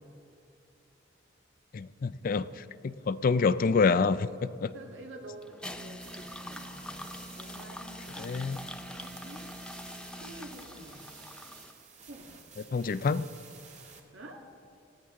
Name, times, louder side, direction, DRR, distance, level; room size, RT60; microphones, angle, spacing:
voice 1, 1.7-4.7 8.2-8.6 12.7-13.3, left 4 dB, 45° left, 15 dB, 0.4 m, -27 dB
voice 2, 4.6-6.8 7.4-8.4 8.9-9.5 10.2-11.1 12.1-12.3 14.1-14.5, right 1 dB, 75° right, 2 dB, 1.8 m, -48 dB
sound 1, 5.4-11.7, left 1 dB, 5° left, 0.7 m, -43 dB
sound 2, 6.0-14.0, right 5 dB, 40° right, 1.6 m, -52 dB
19.5 x 14.5 x 3.6 m, 2.8 s
head